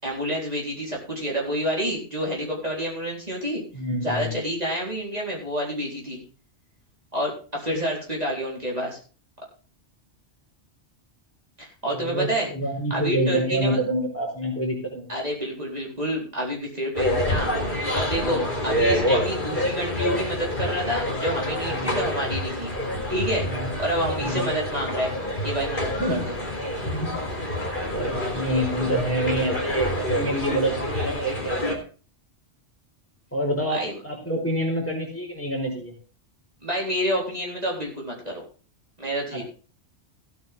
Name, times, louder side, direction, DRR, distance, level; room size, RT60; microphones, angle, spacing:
voice 1, 0.0-3.6 4.0-6.2 7.1-9.0 11.6-12.5 12.9-13.8 15.1-17.5 17.9-22.7 23.1-23.5 23.8-25.1 25.4-26.3 33.7-33.9 36.6-38.4 39.0-39.4, equal, 35° right, -3 dB, 4.3 m, -28 dB
voice 2, 3.7-4.4 11.9-15.1 18.2-18.5 21.7-21.9 23.5-23.7 24.2-24.4 26.0-26.2 26.8-27.2 27.9-31.8 33.3-35.9 39.3-39.4, right 1 dB, 10° left, 0 dB, 4.3 m, -27 dB
sound 1, 17.0-31.8, left 1 dB, 45° left, 4.0 m, -27 dB
16.0 x 9.2 x 3.6 m, 0.38 s
omnidirectional pair, 1.2 m